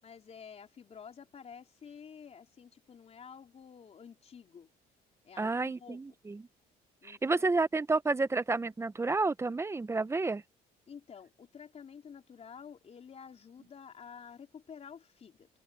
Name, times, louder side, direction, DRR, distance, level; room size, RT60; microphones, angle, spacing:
voice 1, 0.0-4.7 5.2-6.2 7.0-7.4 10.9-15.5, left 7 dB, 40° left, 3.8 m, -50 dB
voice 2, 5.4-6.4 7.1-10.4, right 3 dB, 15° right, 0.8 m, -30 dB
cardioid pair, 110°, 17 cm